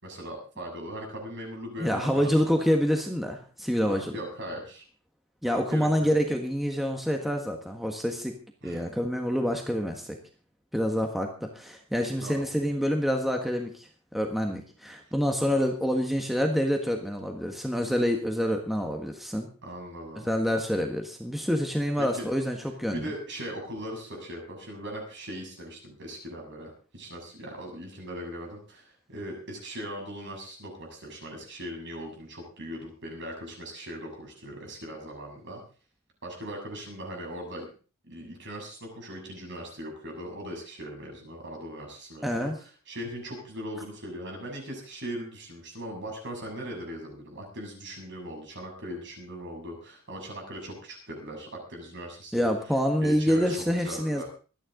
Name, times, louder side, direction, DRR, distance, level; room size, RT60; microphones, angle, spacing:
voice 1, 0.0-2.5 3.8-4.8 5.5-6.1 8.6-8.9 12.2-12.5 19.6-20.3 22.0-22.3 22.9-35.6 36.2-37.7 38.1-42.5 42.9-52.5 53.0-54.3, equal, 55° right, 1 dB, 7.0 m, -39 dB
voice 2, 1.8-4.1 5.4-8.3 8.6-10.2 10.7-19.5 20.2-23.1 42.2-42.6 52.3-54.2, equal, ahead, 3 dB, 1.5 m, -27 dB
24.5 x 10.0 x 3.8 m, 0.36 s
head